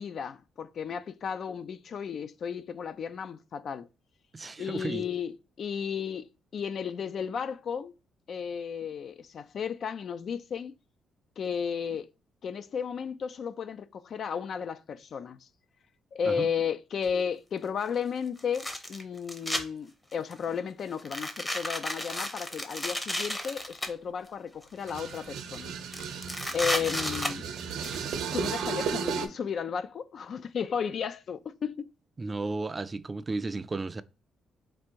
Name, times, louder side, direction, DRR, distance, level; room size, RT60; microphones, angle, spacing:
voice 1, 0.0-3.9 4.6-7.9 8.3-10.7 11.4-12.1 12.4-15.5 16.1-25.7 26.5-27.4 28.3-31.8, left 7 dB, 55° left, 0.3 m, -34 dB
voice 2, 4.3-5.1 16.3-16.5 32.2-34.0, right 3 dB, 25° right, 0.3 m, -34 dB
sound 1, 17.1-17.2 18.4-19.6 20.1-20.4 21.0-23.9 24.6-25.3 25.5-25.6 25.9-28.0, left 1 dB, 15° left, 0.8 m, -33 dB
sound 2, 24.8-29.3, right 7 dB, 80° right, 0.7 m, -34 dB
4.4 x 2.5 x 4.5 m
cardioid pair, 90°, 0 cm